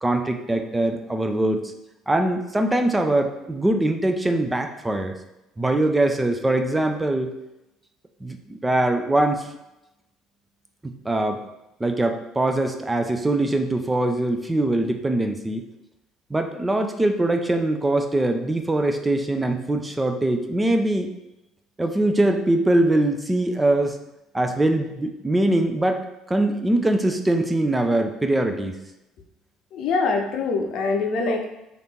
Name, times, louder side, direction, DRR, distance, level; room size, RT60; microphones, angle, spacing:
voice 1, 0.0-1.7 2.1-5.1 5.6-7.3 8.2-9.5 10.8-11.4 11.8-15.7 16.3-21.1 21.8-24.0 24.3-26.0 26.3-28.8, right 1 dB, 15° right, 5 dB, 0.5 m, -22 dB
voice 2, 29.7-31.4, left 4 dB, 60° left, 3 dB, 0.7 m, -24 dB
3.3 x 2.6 x 4.3 m, 0.90 s
hypercardioid pair, 65°, 0 cm